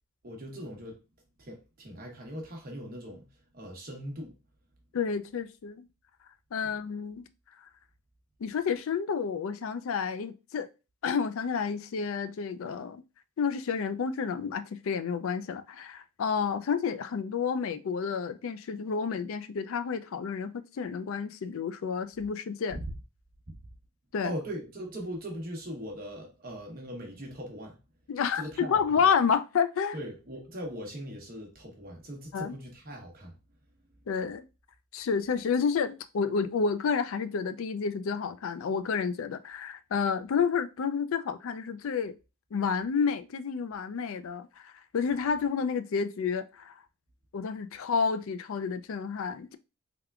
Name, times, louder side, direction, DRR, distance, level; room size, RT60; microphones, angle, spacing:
voice 1, 0.2-1.0 1.4-3.3 3.5-4.3 6.6-6.7 22.7-22.8 23.5-23.6 24.2-27.8 28.3-29.0 29.9-33.3, equal, 40° right, 1.0 m, -40 dB
voice 2, 4.9-5.9 6.5-7.3 8.4-10.7 11.0-13.0 13.4-22.8 24.1-24.3 28.1-30.0 32.3-32.5 34.1-34.5 34.9-42.2 42.5-46.8 47.3-49.6, left 6 dB, 65° left, 0.3 m, -30 dB
3.5 x 3.4 x 2.3 m
head